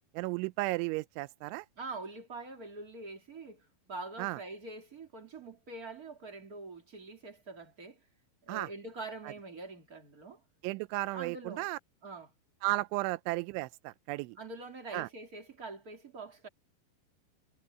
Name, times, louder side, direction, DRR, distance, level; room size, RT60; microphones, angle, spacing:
voice 1, 0.1-1.7 4.2-4.4 8.5-8.7 10.6-11.8 12.6-14.4 14.9-15.1, right 21 dB, 85° right, 2.7 m, -34 dB
voice 2, 1.8-8.0 8.4-10.4 11.1-11.7 12.0-12.3 14.3-16.5, right 3 dB, 30° right, 1.6 m, -44 dB
omnidirectional pair, 5.9 m